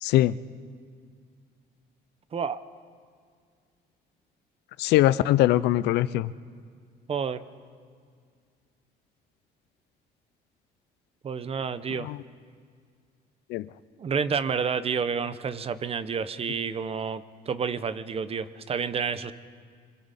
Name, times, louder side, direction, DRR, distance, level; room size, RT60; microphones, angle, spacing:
voice 1, 0.0-0.3 4.8-6.3 12.0-12.2 13.5-13.7, left 14 dB, 85° left, 16 dB, 0.5 m, -22 dB
voice 2, 7.1-7.4 11.2-12.1 14.0-19.3, right 6 dB, 35° right, 13 dB, 0.9 m, -29 dB
25.5 x 25.0 x 4.2 m, 2.1 s
cardioid pair, 110°, 17 cm